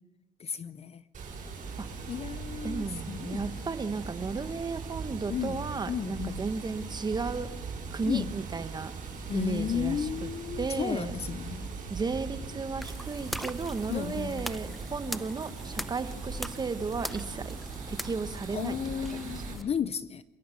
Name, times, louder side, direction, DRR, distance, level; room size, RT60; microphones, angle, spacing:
voice 1, 0.4-1.0 2.1-3.5 5.3-5.6 5.9-6.4 8.1-8.3 9.3-11.7 13.9-14.4 18.5-20.2, left 8 dB, 35° left, 0.6 m, -33 dB
Water, 1.1-19.5, right 4 dB, 50° right, 7.4 m, -40 dB
voice 2, 2.6-7.5 7.9-8.9 9.3-10.3 10.6-11.2 11.9-17.5 17.9-19.5, right 4 dB, 25° right, 1.3 m, -34 dB
sound 1, 12.8-19.6, equal, ahead, 0.6 m, -41 dB
27.5 x 13.5 x 7.2 m
cardioid pair, 110°, 17 cm